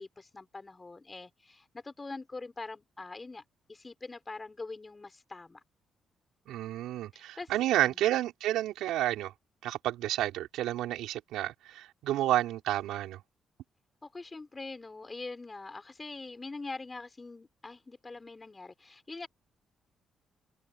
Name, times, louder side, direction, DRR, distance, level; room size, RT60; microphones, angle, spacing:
voice 1, 0.0-3.4 3.7-5.6 6.5-6.6 7.1-7.9 14.0-19.3, left 3 dB, 25° left, 6.6 m, -43 dB
voice 2, 6.5-9.3 9.6-13.2, right 14 dB, 90° right, 4.8 m, -30 dB
open air
cardioid pair, 90°, 0 cm